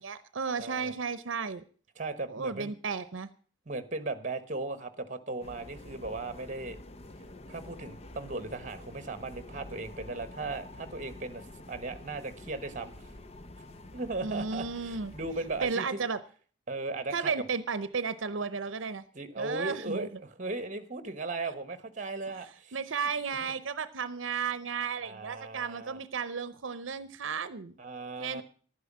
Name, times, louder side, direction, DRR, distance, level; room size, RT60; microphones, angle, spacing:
voice 1, 0.0-1.6 2.3-3.3 14.2-15.1 15.6-16.2 17.1-19.0 19.4-20.1 22.7-27.7 28.2-28.4, right 5 dB, 85° right, 14 dB, 0.7 m, -33 dB
voice 2, 0.6-0.9 2.0-2.7 3.7-6.8 7.5-12.9 13.9-16.1 16.7-17.3 19.1-22.8 23.4-23.5 25.0-26.0 27.8-28.4, right 3 dB, 40° right, 12 dB, 1.2 m, -37 dB
sound 1, 5.4-15.7, left 1 dB, 30° left, 0.6 m, -48 dB
11.5 x 9.5 x 7.4 m, 0.43 s
head